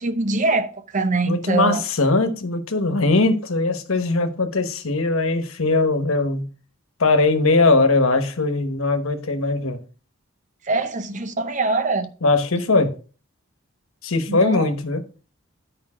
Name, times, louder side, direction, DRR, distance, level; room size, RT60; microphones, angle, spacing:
voice 1, 0.0-1.8 10.6-12.1 14.3-14.7, right 3 dB, 35° right, 0.7 m, -23 dB
voice 2, 1.2-6.5 7.0-9.8 12.2-12.9 14.0-15.0, left 3 dB, 70° left, 1.2 m, -20 dB
9.9 x 5.1 x 5.0 m
head